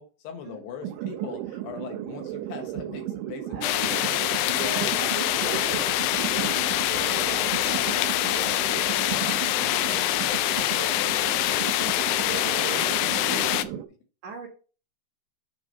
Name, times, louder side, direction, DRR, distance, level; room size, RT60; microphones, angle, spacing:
voice 1, 0.0-5.8 6.2-7.1 7.5-10.5 10.9-12.9 13.3-13.8, left 5 dB, 70° left, 4 dB, 3.2 m, -41 dB
sound 1, 0.8-13.9, right 12 dB, 90° right, 3.1 m, -35 dB
voice 2, 3.5-5.7 12.4-13.3 14.2-14.5, right 5 dB, 70° right, 0 dB, 1.6 m, -39 dB
sound 2, 3.6-13.6, left 15 dB, 90° left, 2.3 m, -25 dB
9.2 x 3.7 x 5.2 m, 0.36 s
omnidirectional pair, 5.2 m